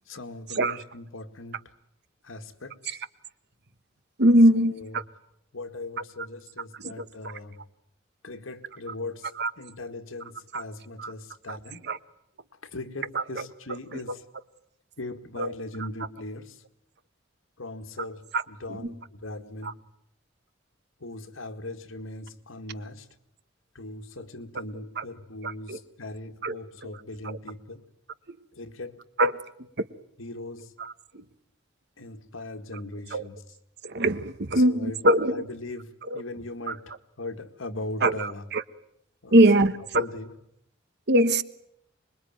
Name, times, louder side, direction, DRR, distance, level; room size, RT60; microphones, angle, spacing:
voice 1, 0.1-1.6 2.2-3.0 4.5-5.0 5.5-7.7 8.2-11.8 12.6-14.2 15.0-16.6 17.6-19.9 21.0-23.1 23.7-27.8 28.5-29.0 30.2-30.7 32.0-33.4 34.6-35.0 35.3-38.4 39.2-39.4 39.9-40.3, left 2 dB, 85° left, 2.0 m, -39 dB
voice 2, 4.2-5.0 6.8-7.3 9.4-9.5 10.5-10.6 11.0-11.1 11.5-11.6 11.8-12.0 13.1-13.4 13.9-14.0 15.4-15.5 18.3-18.4 18.8-18.9 19.6-19.7 25.0-25.1 25.4-25.8 26.4-26.6 27.2-27.4 28.3-28.4 29.2-29.3 29.8-29.9 30.8-31.2 33.1-33.2 33.8-35.4 36.1-36.2 36.7-36.8 38.0-38.6 39.3-40.1 41.1-41.4, right 1 dB, 55° right, 1.3 m, -22 dB
26.0 x 22.0 x 9.1 m
head